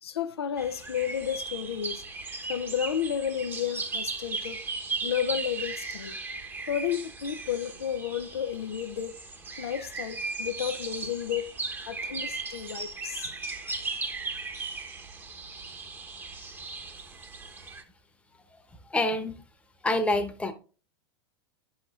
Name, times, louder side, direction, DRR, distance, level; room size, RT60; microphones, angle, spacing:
voice 1, 0.0-2.0 2.5-4.6 5.0-6.2 6.7-9.2 9.6-11.5 11.9-13.3, left 9 dB, 80° left, 0.5 m, -32 dB
sound 1, 0.6-17.8, right 3 dB, 15° right, 0.9 m, -37 dB
voice 2, 18.9-19.3 19.8-20.5, left 2 dB, 10° left, 0.9 m, -26 dB
10.5 x 6.3 x 2.4 m
hypercardioid pair, 100°, 13 cm